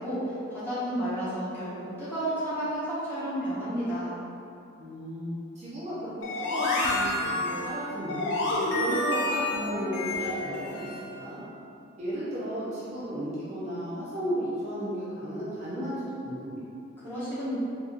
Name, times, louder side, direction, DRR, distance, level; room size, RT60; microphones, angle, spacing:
voice 1, 0.0-4.1 17.0-17.6, equal, 10° left, -13 dB, 1.0 m, -31 dB
voice 2, 4.8-5.3 5.6-8.4 8.7-11.4 12.0-16.6, equal, 35° right, -10 dB, 0.5 m, -34 dB
sound 1, 6.2-11.1, left 1 dB, 60° left, 0.5 m, -29 dB
3.8 x 2.8 x 2.5 m, 2.6 s
head